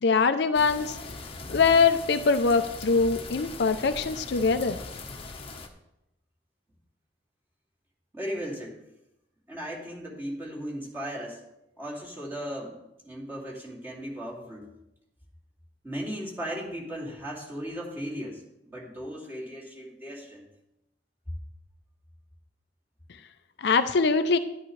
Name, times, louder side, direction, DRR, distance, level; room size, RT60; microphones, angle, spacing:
voice 1, 0.0-1.0 1.5-4.8 23.6-24.4, left 4 dB, 65° left, 9 dB, 0.5 m, -23 dB
sound 1, 0.5-5.7, left 3 dB, 30° left, 1.0 m, -40 dB
voice 2, 8.1-8.8 9.5-11.4 11.8-14.7 15.8-20.5, equal, 10° right, -5 dB, 2.5 m, -37 dB
11.0 x 11.0 x 3.2 m, 0.88 s
head